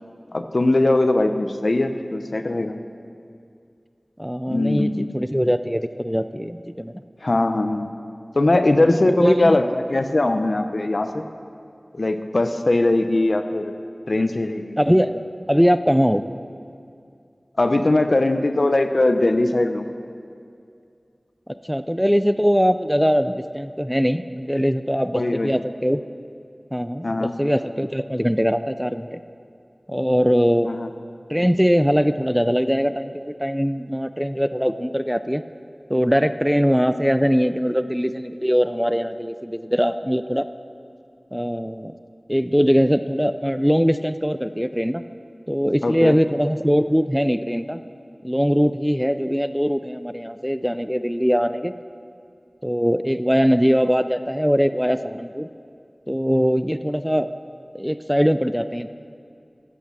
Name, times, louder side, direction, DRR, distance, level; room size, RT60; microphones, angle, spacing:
voice 1, 0.3-2.7 4.5-5.1 7.2-7.9 8.3-11.2 11.9-13.7 14.1-14.8 17.6-19.9 25.1-25.5 27.0-27.3 30.6-30.9 45.8-46.2, left 2 dB, 65° left, 8 dB, 0.8 m, -20 dB
voice 2, 4.2-7.0 9.2-9.6 14.8-15.2 15.5-16.2 21.5-26.0 26.7-29.2 29.9-30.7 31.3-35.4 35.9-40.5 41.3-42.0 42.3-45.0 45.5-47.8 48.2-51.7 52.6-55.5 56.1-57.3 57.7-58.9, equal, ahead, 11 dB, 0.4 m, -21 dB
14.0 x 8.3 x 7.4 m, 2.4 s
wide cardioid pair, 40°, 0 cm